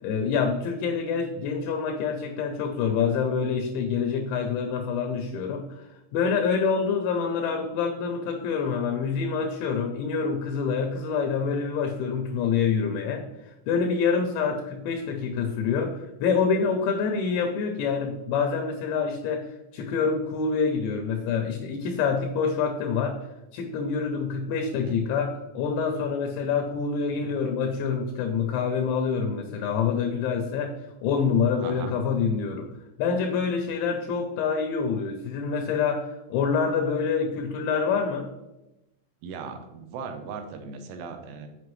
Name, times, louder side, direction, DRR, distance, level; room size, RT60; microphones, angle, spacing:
voice 1, 0.0-5.9 6.1-19.4 19.7-23.2 23.5-30.7 31.0-32.7 33.0-38.3, left 5 dB, 80° left, 4 dB, 2.7 m, -26 dB
voice 2, 31.6-31.9 39.2-41.5, right 5 dB, 80° right, 6 dB, 3.1 m, -37 dB
8.5 x 5.5 x 3.1 m, 0.94 s
omnidirectional pair, 5.8 m